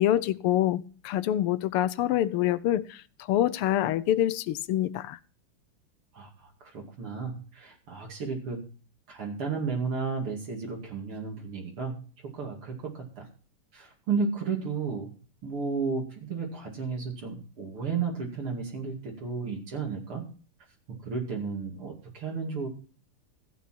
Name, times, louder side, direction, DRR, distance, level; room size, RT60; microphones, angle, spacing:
voice 1, 0.0-3.0 3.3-5.2, left 12 dB, 85° left, 1.6 m, -26 dB
voice 2, 6.1-8.6 9.1-12.0 12.3-13.3 13.7-15.1 15.4-20.2 20.9-22.7, right 5 dB, 75° right, 3.4 m, -33 dB
15.0 x 8.5 x 4.3 m
omnidirectional pair, 2.4 m